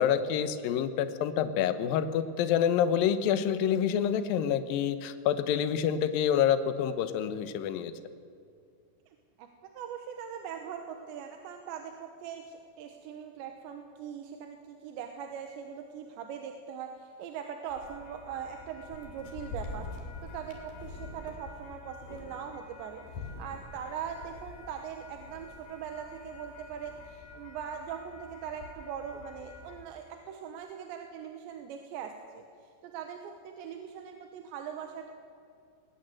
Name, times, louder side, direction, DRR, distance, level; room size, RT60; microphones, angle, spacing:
voice 1, 0.0-7.9, left 9 dB, 70° left, 11 dB, 2.3 m, -27 dB
voice 2, 9.1-9.5 9.7-35.1, right 7 dB, 80° right, 5 dB, 3.4 m, -41 dB
sound 1, 17.7-29.8, left 3 dB, 55° left, 3.9 m, -46 dB
21.0 x 19.5 x 7.8 m, 2.3 s
omnidirectional pair, 5.1 m